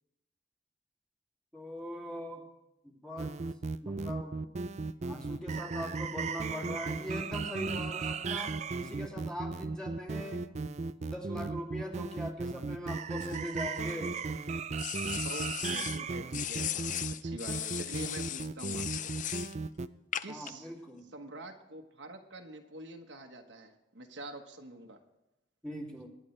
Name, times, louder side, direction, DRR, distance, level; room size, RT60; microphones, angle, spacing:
voice 1, 1.5-2.5 2.8-3.3 3.8-4.5 5.0-10.4 11.0-14.2 20.3-21.1 25.6-26.1, equal, 5° left, -2 dB, 2.6 m, -41 dB
sound 1, 3.2-19.9, right 4 dB, 40° right, 0.4 m, -36 dB
sound 2, 13.2-14.2 14.8-16.0 16.3-19.5 20.1-20.5, left 11 dB, 45° left, 0.4 m, -37 dB
voice 2, 15.2-19.1 20.2-20.7 21.1-25.0, right 2 dB, 75° right, 4 dB, 1.2 m, -46 dB
24.0 x 10.5 x 3.3 m, 0.90 s
head